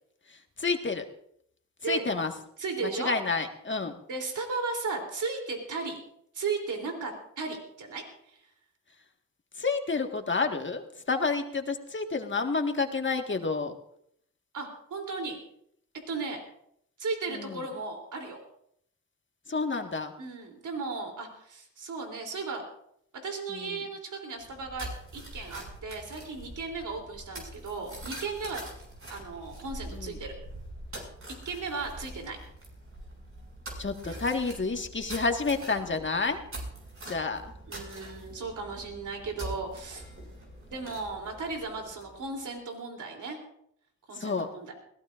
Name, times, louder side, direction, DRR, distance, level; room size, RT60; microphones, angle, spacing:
voice 1, 0.3-1.0 1.9-2.3 3.0-4.0 9.5-13.7 17.3-17.7 19.5-20.1 23.5-23.7 29.9-30.2 33.8-36.4 37.1-37.5 44.1-44.5, left 4 dB, 40° left, 5 dB, 1.7 m, -30 dB
voice 2, 2.6-3.1 4.1-6.0 6.3-8.4 14.5-15.4 16.1-16.4 17.0-18.4 20.2-22.6 23.2-24.9 25.1-28.6 29.1-30.3 31.4-32.4 34.0-34.2 37.7-40.1 40.7-43.4 44.1-44.7, right 4 dB, 75° right, 2 dB, 3.4 m, -35 dB
sound 1, 24.4-42.3, right 1 dB, 45° right, 6.6 m, -44 dB
21.5 x 18.0 x 2.6 m, 0.70 s
cardioid pair, 60°, 31 cm